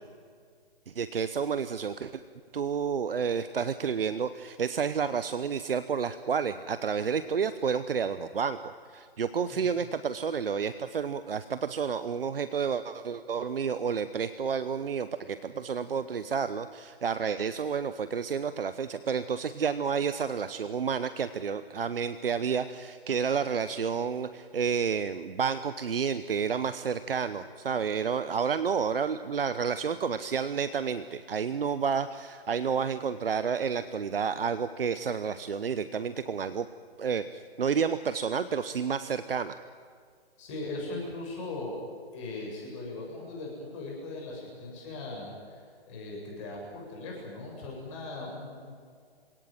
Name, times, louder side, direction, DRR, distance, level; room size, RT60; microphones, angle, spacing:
voice 1, 0.9-2.2 2.5-36.7 37.0-39.6, right 6 dB, 60° right, 12 dB, 1.0 m, -30 dB
voice 2, 40.4-41.8 42.1-45.6 45.9-48.8, left 2 dB, 30° left, -2 dB, 7.6 m, -39 dB
26.5 x 18.0 x 9.2 m, 2.1 s
figure-of-eight pair, 140°, 32 cm